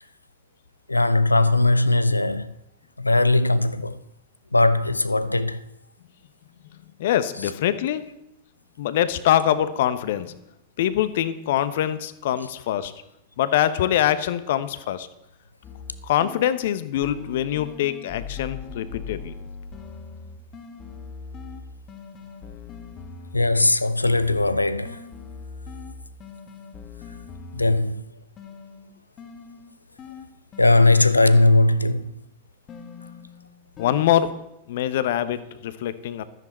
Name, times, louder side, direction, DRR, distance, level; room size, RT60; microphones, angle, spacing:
voice 1, 0.9-2.5 3.0-4.0 4.5-5.6 23.3-25.0 27.5-28.0 30.6-32.1, left 2 dB, 85° left, 0.6 m, -19 dB
voice 2, 7.0-8.0 8.8-10.4 10.8-12.9 13.4-15.1 16.0-19.3 33.8-34.4 34.7-36.2, left 11 dB, 55° left, 1.0 m, -24 dB
sound 1, 15.6-16.7 17.0-23.7 24.0-28.0 28.4-32.1 32.7-34.3, left 5 dB, 30° left, 1.7 m, -41 dB
14.5 x 13.0 x 4.5 m
figure-of-eight pair, 90°, 0 cm